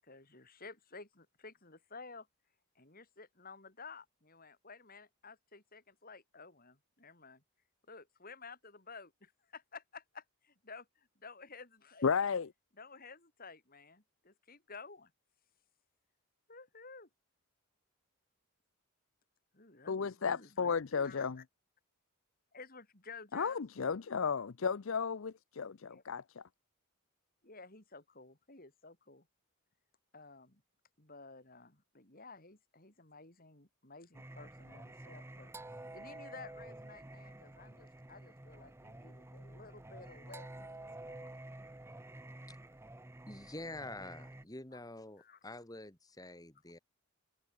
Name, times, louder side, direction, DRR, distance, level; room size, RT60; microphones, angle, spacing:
voice 1, 0.0-2.3 2.7-7.4 7.9-12.1 12.7-15.1 16.5-17.1 19.5-21.4 22.5-23.6 25.9-26.0 27.4-29.3 30.1-30.6 31.0-41.3 44.7-44.8 45.2-45.4, left 4 dB, 40° left, 4.4 m, -53 dB
voice 2, 12.0-12.5 19.9-21.4 23.3-26.4, left 6 dB, 60° left, 0.5 m, -34 dB
Singing, 34.1-44.4, right 1 dB, 10° right, 0.7 m, -50 dB
voice 3, 43.3-46.8, left 2 dB, 15° left, 2.0 m, -47 dB
head